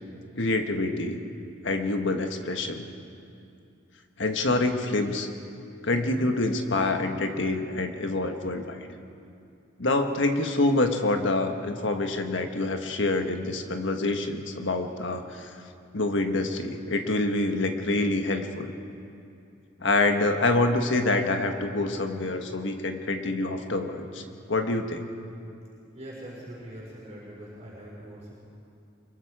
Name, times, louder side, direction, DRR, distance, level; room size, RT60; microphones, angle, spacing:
voice 1, 0.3-1.2 1.6-2.9 4.2-5.3 5.8-8.9 9.8-15.5 15.9-18.7 19.8-25.1, left 2 dB, 65° left, 5 dB, 1.5 m, -26 dB
voice 2, 25.9-28.3, right 1 dB, 35° right, -7 dB, 4.9 m, -42 dB
24.5 x 22.5 x 4.9 m, 2.6 s
head